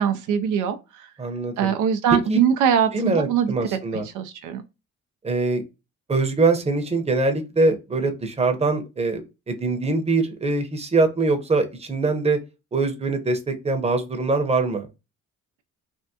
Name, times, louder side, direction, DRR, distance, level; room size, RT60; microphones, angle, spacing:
voice 1, 0.0-1.1 1.6-3.5 3.9-4.6, right 8 dB, 80° right, 0.6 m, -22 dB
voice 2, 1.2-1.7 2.1-2.4 2.9-4.1 5.2-5.6 6.1-12.4 12.7-14.9, right 3 dB, 20° right, 0.8 m, -23 dB
3.4 x 2.2 x 2.7 m
cardioid pair, 90°, 30 cm